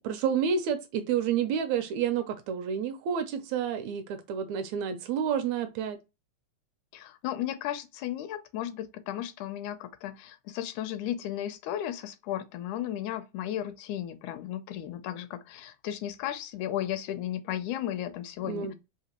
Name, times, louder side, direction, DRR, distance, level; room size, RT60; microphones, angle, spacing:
voice 1, 0.0-6.0 18.5-18.7, right 7 dB, 80° right, 1.8 m, -29 dB
voice 2, 6.9-18.7, left 11 dB, 80° left, 1.9 m, -35 dB
5.0 x 2.7 x 2.9 m
omnidirectional pair, 3.5 m